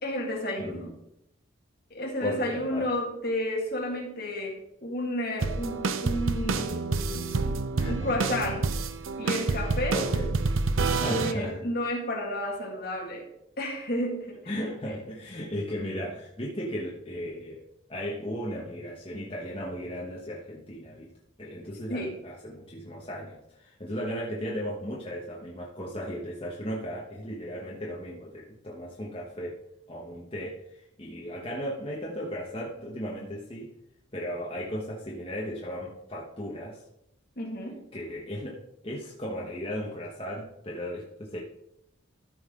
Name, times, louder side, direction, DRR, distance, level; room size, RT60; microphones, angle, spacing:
voice 1, 0.0-0.9 1.9-8.7 9.2-10.1 11.1-13.3 13.6-14.4 21.9-22.2 37.4-37.8, left 1 dB, 50° left, 0 dB, 2.0 m, -32 dB
voice 2, 0.6-0.9 2.2-2.9 7.8-8.1 9.9-10.3 11.0-11.6 14.5-17.6 17.9-21.1 21.4-29.6 29.9-33.7 34.1-36.8 37.9-41.4, equal, 30° left, -3 dB, 1.1 m, -36 dB
sound 1, 5.4-11.3, right 3 dB, 85° right, 0.6 m, -28 dB
13.5 x 5.6 x 3.7 m, 0.80 s
head